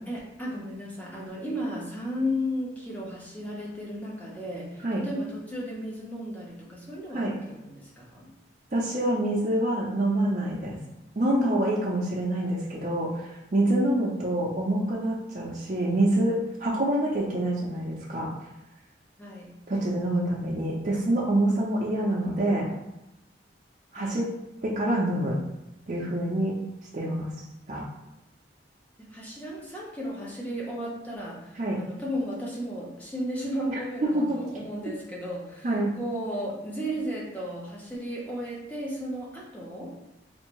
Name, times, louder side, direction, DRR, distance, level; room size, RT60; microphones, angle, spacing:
voice 1, 0.1-8.3 19.2-19.5 23.9-24.2 29.0-39.9, equal, 10° left, -5 dB, 0.7 m, -34 dB
voice 2, 8.7-10.8 11.2-18.3 19.7-22.7 23.9-24.3 24.6-25.4 25.9-26.6 26.9-27.3 27.7-27.9 31.6-31.8 34.0-34.4 35.6-35.9, right 1 dB, 40° right, -6 dB, 0.5 m, -26 dB
3.5 x 2.5 x 3.0 m, 0.94 s
head